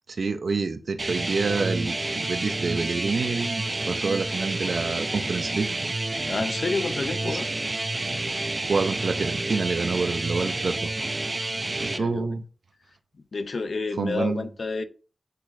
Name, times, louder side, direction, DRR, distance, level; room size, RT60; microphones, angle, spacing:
voice 1, 0.1-5.7 7.2-7.4 8.7-10.9 11.8-12.4 14.0-14.5, right 4 dB, 85° right, 0.7 m, -27 dB
sound 1, 1.0-12.0, right 2 dB, 40° right, 0.6 m, -29 dB
voice 2, 6.2-7.5 11.5-12.3 13.3-14.8, left 3 dB, 80° left, 0.6 m, -30 dB
9.2 x 4.0 x 2.6 m
wide cardioid pair, 65°, 0 cm